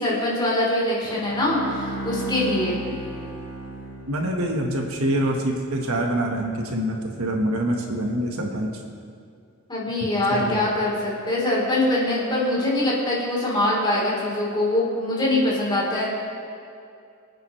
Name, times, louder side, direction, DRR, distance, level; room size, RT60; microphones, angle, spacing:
voice 1, 0.0-2.8 9.7-16.1, left 1 dB, 20° left, -6 dB, 3.9 m, -23 dB
Bowed string instrument, 1.0-4.6, right 1 dB, 10° right, 3.4 m, -34 dB
voice 2, 4.1-8.7 10.3-10.6, right 1 dB, 65° right, 1 dB, 1.6 m, -25 dB
25.0 x 9.4 x 3.3 m, 2.4 s
head